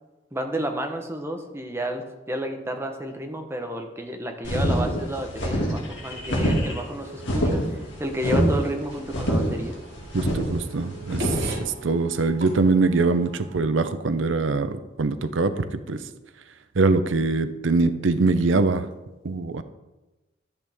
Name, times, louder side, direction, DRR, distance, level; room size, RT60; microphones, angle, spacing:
voice 1, 0.3-7.6 8.0-9.8, right 1 dB, 15° right, 4 dB, 1.0 m, -31 dB
sound 1, 4.4-11.5, equal, 70° left, 2.1 m, -25 dB
sound 2, 6.1-13.6, right 1 dB, 60° right, 2.1 m, -41 dB
voice 2, 10.1-16.0 16.8-18.9 19.2-19.6, right 3 dB, 85° right, 10 dB, 0.6 m, -23 dB
11.5 x 8.1 x 3.6 m, 1.1 s
head